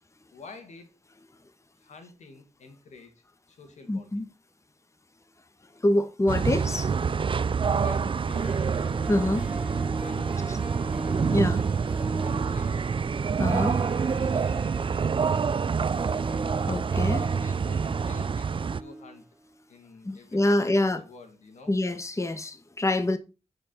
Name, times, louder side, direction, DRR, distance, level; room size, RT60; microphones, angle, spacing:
voice 1, 0.3-0.9 1.8-3.1 3.5-4.3 7.7-8.7 10.0-10.8 12.2-13.1 14.2-15.1 17.1-19.3 19.7-21.7, left 4 dB, 85° left, 2.0 m, -48 dB
voice 2, 3.9-4.3 5.8-6.9 9.1-9.4 10.5-10.6 11.3-11.6 13.4-13.8 16.7-17.2 20.0-21.0 21.7-23.2, left 1 dB, 25° left, 1.2 m, -25 dB
sound 1, 6.3-18.8, right 6 dB, 45° right, 0.4 m, -27 dB
Harp, 8.2-19.3 19.5-19.6, right 1 dB, 10° right, 1.1 m, -40 dB
9.8 x 5.0 x 5.3 m
cardioid pair, 50°, 12 cm